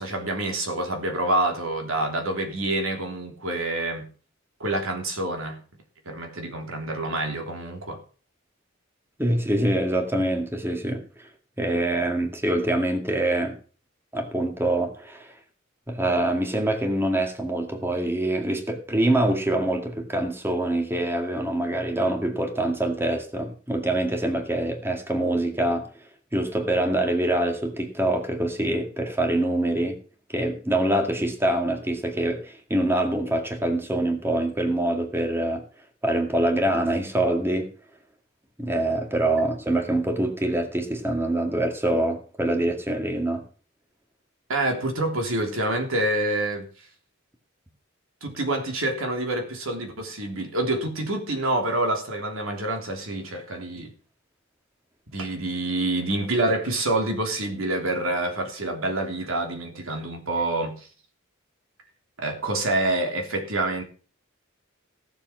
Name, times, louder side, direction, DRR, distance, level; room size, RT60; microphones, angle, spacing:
voice 1, 0.0-4.1 4.6-5.6 6.0-8.0 39.4-39.5 44.5-46.7 48.2-53.9 55.1-60.9 62.2-63.8, right 2 dB, 90° right, 3.4 m, -27 dB
voice 2, 9.2-11.3 11.6-13.6 14.1-15.3 15.9-25.9 26.3-30.0 30.3-35.6 36.0-37.7 38.6-43.5, right 1 dB, 10° right, 2.0 m, -25 dB
17.0 x 7.2 x 6.2 m
head